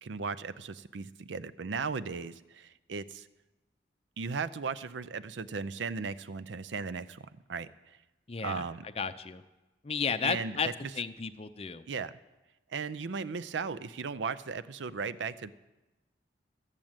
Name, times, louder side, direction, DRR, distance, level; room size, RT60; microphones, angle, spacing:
voice 1, 0.0-3.3 4.2-7.2 7.5-7.7 8.4-8.8 10.2-10.5 11.9-12.1 12.7-15.5, right 5 dB, 80° right, 14 dB, 0.5 m, -36 dB
voice 2, 8.3-8.7 9.0-9.4 9.8-10.7 10.9-11.8, left 5 dB, 30° left, 11 dB, 0.5 m, -33 dB
12.5 x 7.6 x 8.8 m, 1.1 s
head